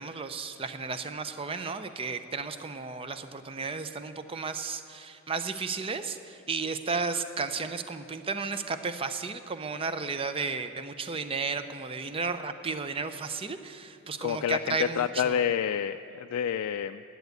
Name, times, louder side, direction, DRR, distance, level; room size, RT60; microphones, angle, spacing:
voice 1, 0.0-15.4, right 4 dB, 25° right, 10 dB, 0.5 m, -33 dB
voice 2, 14.2-17.0, left 8 dB, 80° left, 9 dB, 0.3 m, -28 dB
10.5 x 8.0 x 9.2 m, 2.7 s
head